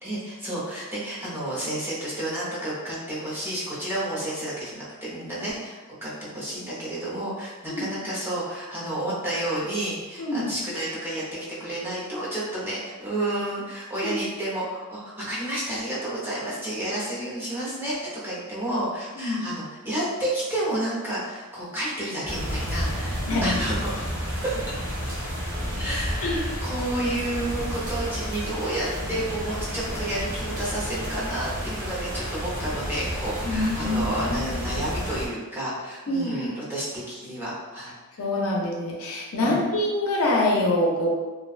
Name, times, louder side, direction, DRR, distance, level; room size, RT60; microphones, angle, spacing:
voice 1, 0.0-24.8 25.7-38.2 39.4-39.6, right 1 dB, 10° right, -8 dB, 0.7 m, -31 dB
sound 1, 22.2-35.3, equal, 40° right, 1.0 m, -31 dB
voice 2, 23.2-23.6 26.2-26.4 33.5-34.4 36.1-36.4 38.2-41.1, left 1 dB, 65° left, -2 dB, 0.5 m, -25 dB
2.5 x 2.1 x 2.4 m, 1.2 s
head